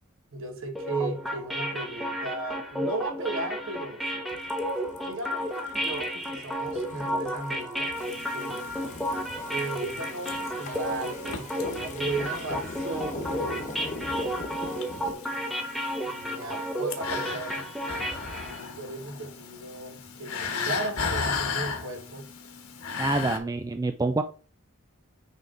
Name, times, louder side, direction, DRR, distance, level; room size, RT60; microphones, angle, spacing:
voice 1, 0.3-4.0 5.1-7.9 8.3-8.6 9.5-13.9 16.1-17.7 18.5-22.3 23.2-23.5, right 2 dB, 60° right, 1.3 m, -36 dB
sound 1, 0.7-18.6, equal, ahead, 0.9 m, -32 dB
sound 2, 4.3-15.1, left 1 dB, 35° left, 1.1 m, -41 dB
sound 3, 8.0-23.4, left 5 dB, 75° left, 1.4 m, -37 dB
voice 2, 23.0-24.2, right 2 dB, 15° right, 0.3 m, -26 dB
9.0 x 3.7 x 3.8 m
head